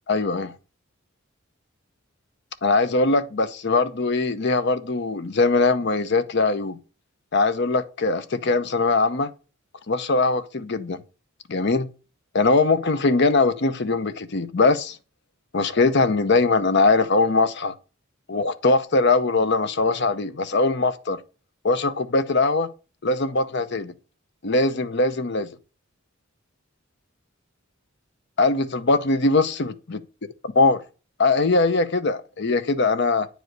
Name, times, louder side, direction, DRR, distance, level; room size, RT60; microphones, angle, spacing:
voice 1, 0.1-0.5 2.6-6.8 7.3-9.3 9.9-11.0 11.5-11.9 12.3-15.0 15.5-17.7 18.3-21.2 21.6-22.7 23.0-23.9 24.4-25.5 28.4-30.0 30.6-30.8 31.2-33.3, left 3 dB, 55° left, 0.8 m, -21 dB
9.0 x 5.1 x 4.6 m
head